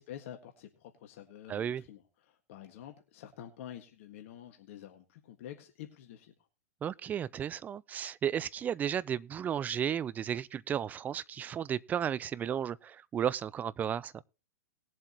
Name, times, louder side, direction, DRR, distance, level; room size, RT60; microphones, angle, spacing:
voice 1, 0.0-6.3, left 10 dB, 55° left, 1.7 m, -48 dB
voice 2, 1.5-1.8 6.8-14.2, right 9 dB, 20° right, 0.5 m, -34 dB
19.5 x 7.6 x 3.0 m
hypercardioid pair, 115°, 8 cm